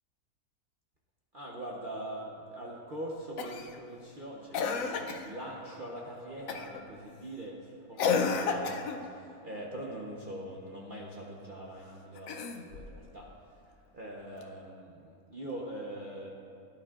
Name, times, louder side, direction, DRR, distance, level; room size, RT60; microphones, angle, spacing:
voice 1, 1.3-13.3 13.9-16.3, right 1 dB, 40° right, -3 dB, 1.0 m, -42 dB
Cough, 3.4-3.8 4.5-5.3 6.5-6.8 8.0-9.1 12.2-12.9 14.4-14.5, left 5 dB, 65° left, 1.0 m, -31 dB
17.0 x 11.0 x 2.5 m, 2.4 s
omnidirectional pair, 1.6 m